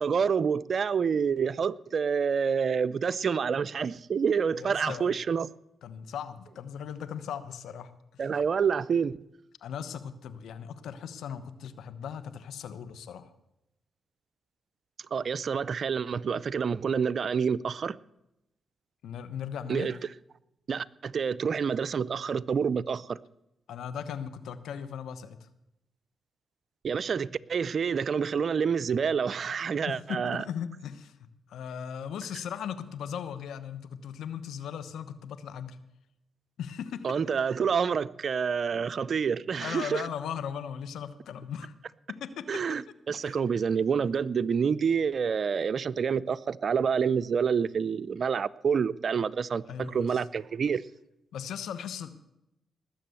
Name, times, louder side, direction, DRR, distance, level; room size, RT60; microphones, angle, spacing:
voice 1, 0.0-5.5 8.2-9.2 15.1-18.0 19.7-19.9 20.7-23.2 26.8-30.4 37.0-40.1 42.5-50.8, right 6 dB, 60° right, 0.5 m, -28 dB
voice 2, 4.5-5.1 5.8-8.2 9.6-13.3 19.0-20.0 23.7-25.5 29.8-31.1 31.5-35.8 36.6-37.1 39.6-41.7 42.2-42.6 43.2-43.4 49.7-50.2 51.3-52.1, left 8 dB, 85° left, 1.0 m, -38 dB
19.5 x 7.5 x 7.0 m
supercardioid pair, 55°, 0 cm